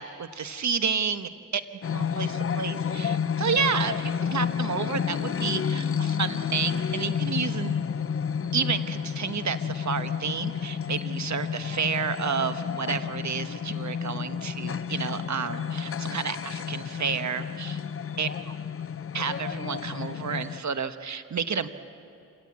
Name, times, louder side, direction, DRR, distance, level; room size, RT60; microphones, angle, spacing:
voice 1, 0.0-1.6 1.9-7.7 8.5-17.8 18.2-18.3 19.1-21.7, right 6 dB, 60° right, 10 dB, 1.2 m, -30 dB
sound 1, 1.8-20.6, left 7 dB, 45° left, 0.6 m, -31 dB
27.5 x 17.5 x 8.6 m, 2.6 s
cardioid pair, 60°, 33 cm